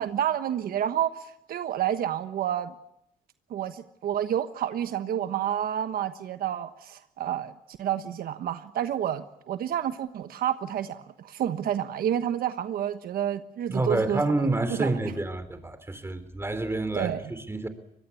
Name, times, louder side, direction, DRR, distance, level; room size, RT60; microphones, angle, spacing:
voice 1, 0.0-2.7 3.5-15.0 16.9-17.3, right 10 dB, 75° right, 10 dB, 1.2 m, -29 dB
voice 2, 13.7-17.7, right 2 dB, 15° right, 11 dB, 3.7 m, -28 dB
24.0 x 20.5 x 8.4 m, 0.82 s
cardioid pair, 85°, 15 cm